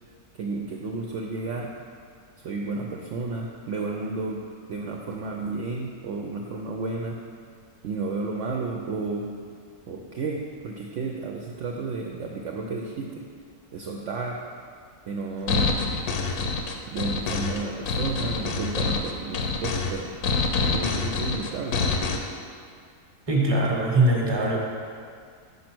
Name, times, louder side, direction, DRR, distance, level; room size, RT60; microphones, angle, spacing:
voice 1, 0.4-1.7 2.4-7.2 7.8-9.3 9.9-13.2 13.7-14.4 15.1-15.8 16.9-20.1 20.6-21.8, right 3 dB, 65° right, 0 dB, 0.8 m, -32 dB
sound 1, 15.5-22.2, left 4 dB, 75° left, 1.1 m, -26 dB
voice 2, 23.3-24.6, right 2 dB, 20° right, -1 dB, 0.9 m, -21 dB
5.6 x 5.3 x 6.0 m, 2.1 s
omnidirectional pair, 1.6 m